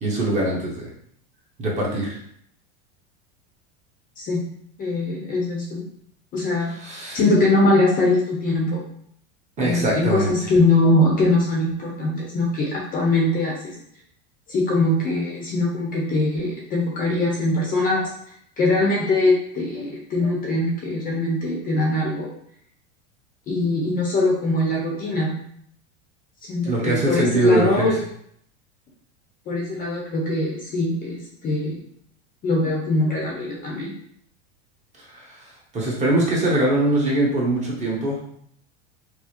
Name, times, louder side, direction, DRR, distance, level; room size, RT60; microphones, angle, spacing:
voice 1, 0.0-0.9 1.6-2.2 6.7-7.2 9.6-10.3 26.7-27.9 35.0-38.2, right 2 dB, 20° right, -4 dB, 0.8 m, -22 dB
voice 2, 4.8-5.8 6.3-6.7 7.1-8.8 9.6-13.7 14.5-18.1 18.6-22.3 23.5-25.3 26.5-28.0 29.5-31.8 32.4-33.9, left 2 dB, 25° left, -2 dB, 0.6 m, -22 dB
4.6 x 2.0 x 2.9 m, 0.66 s
supercardioid pair, 150°, 35 cm